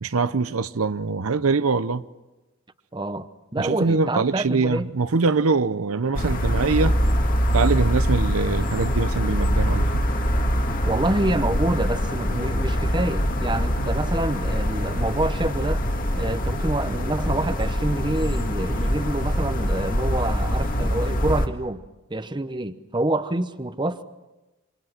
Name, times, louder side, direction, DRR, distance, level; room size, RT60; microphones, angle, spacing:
voice 1, 0.0-2.0 3.6-7.0 7.5-10.0, right 4 dB, 85° right, 0.7 m, -23 dB
voice 2, 2.9-3.3 3.5-4.9 10.8-15.8 16.2-21.8 22.1-24.0, right 2 dB, 20° right, 0.9 m, -27 dB
sound 1, 6.1-21.5, equal, 40° left, 1.8 m, -24 dB
27.5 x 25.5 x 5.9 m
head